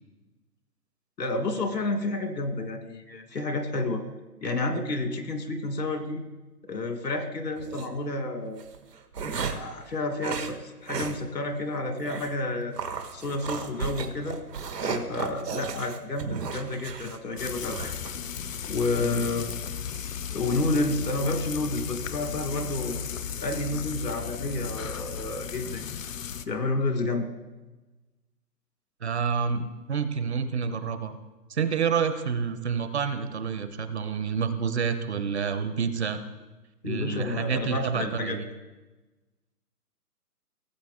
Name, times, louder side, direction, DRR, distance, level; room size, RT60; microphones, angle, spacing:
voice 1, 1.2-4.0 4.4-6.2 6.7-8.6 9.2-12.8 13.1-14.4 14.8-17.9 18.7-19.5 20.3-23.0 23.4-25.8 26.5-27.3 36.8-38.4, left 2 dB, 80° left, 6 dB, 2.0 m, -30 dB
sound 1, 7.6-7.9 8.6-9.7 10.2-10.5 10.9-11.2 11.5-11.6 12.0-12.3 12.8-18.1, right 5 dB, 80° right, 1.5 m, -34 dB
Frying (food), 17.4-26.5, left 8 dB, 55° left, 0.7 m, -35 dB
voice 2, 29.0-31.2 31.5-36.2 36.8-38.5, right 6 dB, 45° right, 10 dB, 0.8 m, -28 dB
17.0 x 7.3 x 3.6 m, 1.1 s
hypercardioid pair, 160°, 48 cm